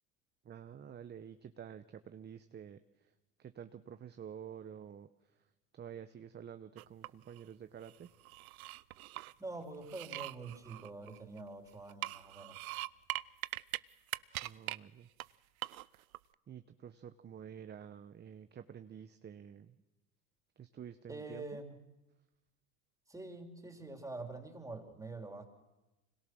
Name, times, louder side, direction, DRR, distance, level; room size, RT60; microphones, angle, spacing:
voice 1, 0.4-3.1 3.4-5.5 5.7-8.1 14.4-15.1 16.5-19.8 20.6-21.6, right 8 dB, 25° right, 10 dB, 0.9 m, -50 dB
sound 1, 6.8-7.4 7.9-9.3 9.8-11.5 11.9-13.8 14.1-14.8 15.2-15.3 15.6-16.2, right 18 dB, 80° right, 0.7 m, -42 dB
voice 2, 9.4-12.6 21.1-21.8 23.1-25.4, right 3 dB, 10° right, 4 dB, 3.9 m, -45 dB
26.0 x 22.0 x 6.3 m, 1.1 s
hypercardioid pair, 95°, 42 cm